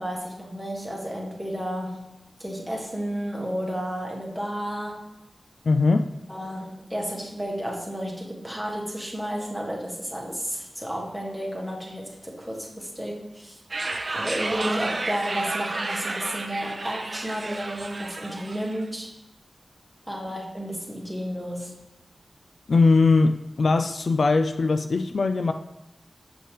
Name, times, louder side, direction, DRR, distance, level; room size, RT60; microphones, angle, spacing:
voice 1, 0.0-2.1 2.4-5.1 6.3-13.6 14.1-19.1 20.1-21.8, equal, ahead, -2 dB, 1.4 m, -32 dB
voice 2, 5.7-6.1 22.7-25.5, left 3 dB, 70° left, 8 dB, 0.3 m, -20 dB
sound 1, 13.7-18.8, right 2 dB, 50° right, 0.5 m, -31 dB
7.4 x 5.5 x 3.3 m, 0.95 s
wide cardioid pair, 80°, 0 cm